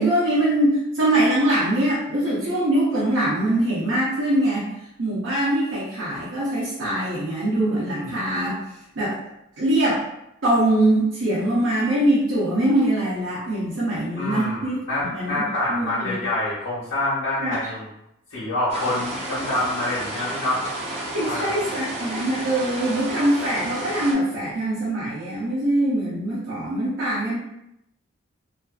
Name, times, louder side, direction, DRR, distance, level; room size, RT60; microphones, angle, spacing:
voice 1, 0.0-4.7 5.0-8.7 9.0-9.2 9.6-10.0 10.4-14.8 15.0-15.4 15.7-16.2 17.4-17.6 21.1-27.4, right 1 dB, 80° right, -8 dB, 0.6 m, -23 dB
voice 2, 14.1-17.9 18.3-20.6 21.2-21.6, left 2 dB, 90° left, -11 dB, 0.9 m, -26 dB
sound 1, 18.7-24.1, right 1 dB, 30° right, 0.4 m, -32 dB
2.5 x 2.3 x 2.3 m, 0.83 s
head